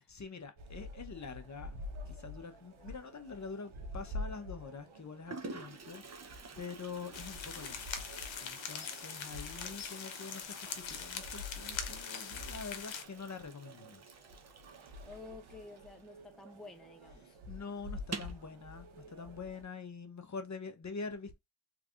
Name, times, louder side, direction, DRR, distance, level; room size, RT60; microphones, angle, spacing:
voice 1, 0.0-1.7 2.0-6.0 6.6-8.1 8.4-14.0 17.2-21.4, left 4 dB, 35° left, 0.9 m, -45 dB
sound 1, 0.6-19.6, left 1 dB, 80° right, 1.1 m, -48 dB
Toilet flush, 3.7-4.2 4.9-5.0 5.3-16.6 16.8-16.9 17.2-17.3 18.0-18.5, right 4 dB, 35° right, 0.9 m, -50 dB
sound 2, 7.1-13.0, left 7 dB, 70° left, 1.0 m, -42 dB
voice 2, 15.0-17.4, left 3 dB, ahead, 0.5 m, -51 dB
3.4 x 3.4 x 2.4 m
cardioid pair, 75°, 48 cm